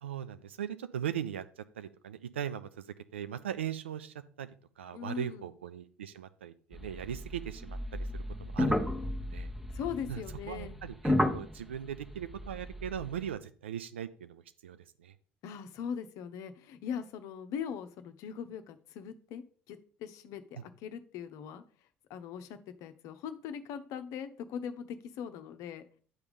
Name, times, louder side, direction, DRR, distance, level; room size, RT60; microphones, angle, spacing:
voice 1, 0.0-4.5 4.8-9.5 10.1-15.1, right 9 dB, 80° right, 11 dB, 0.5 m, -39 dB
voice 2, 4.9-5.4 9.7-10.8 15.4-21.6 22.1-25.8, left 7 dB, 60° left, 10 dB, 0.7 m, -40 dB
sound 1, 6.7-13.3, left 1 dB, 5° right, 1.0 m, -34 dB
9.6 x 3.5 x 5.2 m, 0.43 s
figure-of-eight pair, 55°, 6 cm